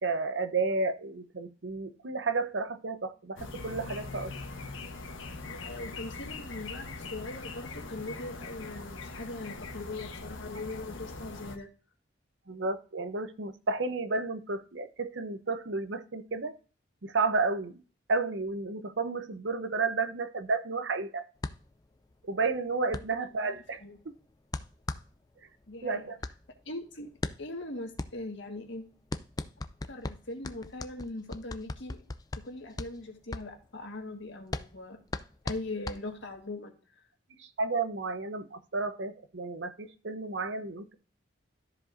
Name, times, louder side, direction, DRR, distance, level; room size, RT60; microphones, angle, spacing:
voice 1, 0.0-4.3 12.5-16.5 17.0-17.7 18.1-21.2 22.3-23.8 25.8-26.2 37.4-40.9, right 3 dB, 70° right, 10 dB, 0.8 m, -32 dB
sound 1, 3.4-11.6, left 3 dB, 90° left, 1.1 m, -42 dB
voice 2, 5.5-11.7 23.2-24.0 25.7-26.0 26.6-27.1 27.4-28.8 29.9-32.0 32.4-35.0 35.4-36.7, left 2 dB, 70° left, 3 dB, 1.7 m, -40 dB
sound 2, 21.4-36.5, left 2 dB, 20° left, 0.3 m, -40 dB
13.5 x 5.0 x 2.6 m, 0.37 s
head